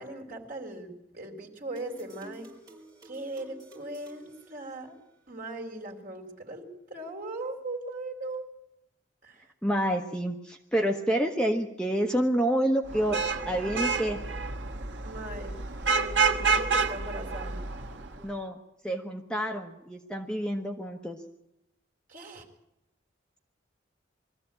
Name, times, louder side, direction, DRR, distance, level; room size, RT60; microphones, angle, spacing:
voice 1, 0.0-2.5 3.0-5.0 5.3-6.6 6.9-8.4 9.2-9.5 15.0-15.6 15.9-17.6 22.1-22.5, right 2 dB, 45° right, 1 dB, 3.6 m, -39 dB
sound 1, 1.8-5.2, right 2 dB, 20° right, 5.1 m, -52 dB
voice 2, 9.6-14.2 18.2-18.6 18.8-21.2, right 1 dB, 5° left, 3 dB, 1.1 m, -28 dB
Vehicle horn car horn honking / Traffic noise roadway noise, 12.9-18.2, right 4 dB, 60° right, 1.4 m, -29 dB
22.5 x 14.5 x 8.9 m, 0.85 s
head